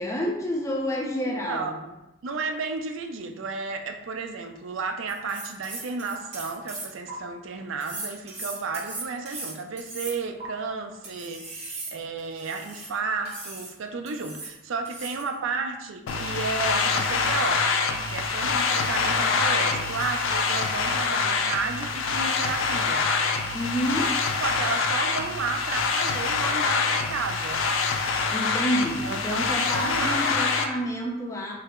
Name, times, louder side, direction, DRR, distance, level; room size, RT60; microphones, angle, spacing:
voice 1, 0.0-1.8 23.5-24.1 28.3-31.5, equal, 15° left, -1 dB, 0.5 m, -29 dB
voice 2, 1.2-2.0 2.2-17.7 18.1-23.1 24.4-27.7 29.0-30.3, right 4 dB, 80° right, 6 dB, 0.4 m, -32 dB
sound 1, 5.1-7.1 7.8-10.5 11.0-12.9 13.3-13.7 14.1-14.6 14.8-15.3, right 3 dB, 30° right, 0.9 m, -38 dB
sound 2, 16.1-30.7, left 4 dB, 80° left, 0.4 m, -25 dB
3.2 x 2.8 x 3.5 m, 0.93 s
head